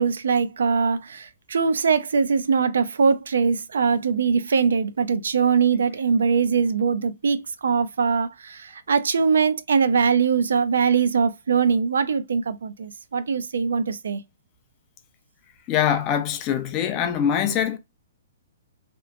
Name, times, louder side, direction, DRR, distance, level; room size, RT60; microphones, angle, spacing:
voice 1, 0.0-14.2, right 5 dB, 85° right, 0.4 m, -22 dB
voice 2, 15.7-17.8, left 9 dB, 25° left, 0.4 m, -23 dB
2.9 x 2.0 x 2.4 m
hypercardioid pair, 165°, 0 cm